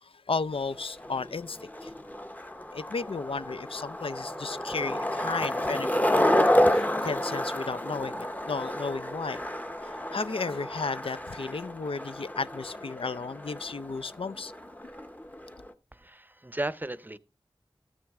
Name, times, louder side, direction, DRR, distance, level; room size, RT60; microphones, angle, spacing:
voice 1, 0.0-1.9 2.7-6.0 6.3-9.4 10.1-14.5, left 4 dB, 75° left, 0.4 m, -34 dB
Skateboard, 0.6-15.7, left 1 dB, 15° left, 0.8 m, -30 dB
voice 2, 15.9-17.2, right 1 dB, 20° right, 0.6 m, -35 dB
14.0 x 6.3 x 3.5 m
wide cardioid pair, 50°, 9 cm